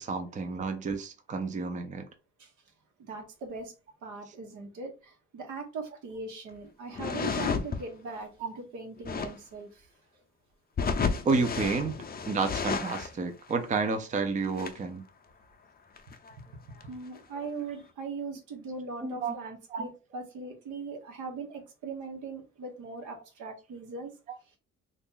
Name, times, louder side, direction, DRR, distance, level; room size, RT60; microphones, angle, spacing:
voice 1, 0.0-2.1 8.4-8.5 11.2-12.0 12.3-15.0 19.0-19.3 19.7-19.9, right 4 dB, 25° right, 0.5 m, -30 dB
voice 2, 3.0-3.7 4.0-9.9 16.8-24.1, right 3 dB, 80° right, 1.1 m, -40 dB
sound 1, 6.9-7.8 9.0-9.4 10.8-13.2 13.5-13.6 13.8-13.9 14.4-14.8 16.0-16.3 16.8-16.9 17.1-17.6, left 5 dB, 30° left, 0.5 m, -32 dB
2.9 x 2.5 x 3.7 m
cardioid pair, 90°, 30 cm